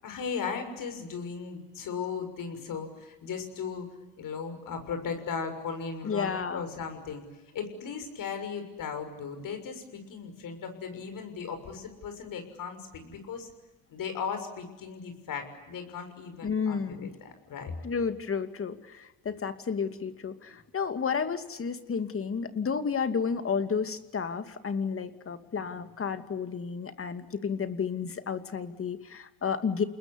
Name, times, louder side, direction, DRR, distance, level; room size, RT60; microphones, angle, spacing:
voice 1, 0.0-3.9 4.2-7.2 7.5-13.5 13.9-17.7, left 6 dB, 65° left, 7 dB, 6.6 m, -37 dB
voice 2, 6.0-6.6 16.4-17.1 17.8-29.8, left 6 dB, 40° left, 9 dB, 2.5 m, -31 dB
29.0 x 21.0 x 9.9 m, 1.1 s
cardioid pair, 110°, 35 cm